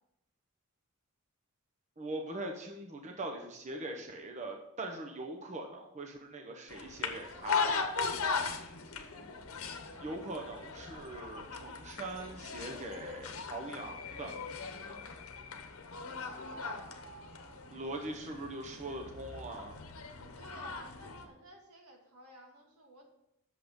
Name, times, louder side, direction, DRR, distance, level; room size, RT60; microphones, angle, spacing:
voice 1, 2.0-7.8 10.0-14.3 17.7-19.8, right 2 dB, 30° right, 2 dB, 0.9 m, -41 dB
sound 1, 6.7-21.2, left 5 dB, 65° left, 1.0 m, -39 dB
voice 2, 8.7-9.4 16.2-17.9 20.2-23.1, right 2 dB, 85° right, 1 dB, 2.1 m, -52 dB
8.5 x 6.8 x 5.2 m, 0.81 s
head